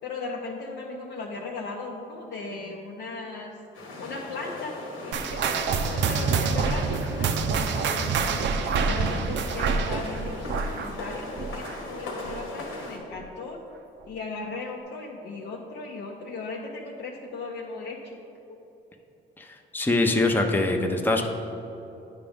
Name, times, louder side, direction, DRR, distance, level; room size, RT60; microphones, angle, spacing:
voice 1, 0.0-3.5 4.0-4.7 5.0-13.6 14.0-18.2 18.5-18.6, left 3 dB, 65° left, -1 dB, 0.7 m, -37 dB
sound 1, 3.7-13.0, left 2 dB, 85° left, 1.4 m, -39 dB
sound 2, 5.1-12.0 12.2-12.6 13.2-13.3 14.0-14.1, right 5 dB, 65° right, 0.5 m, -27 dB
voice 2, 19.4-21.2, left 2 dB, 10° left, 3 dB, 0.6 m, -23 dB
9.0 x 5.1 x 3.5 m, 2.9 s
cardioid pair, 90°, 20 cm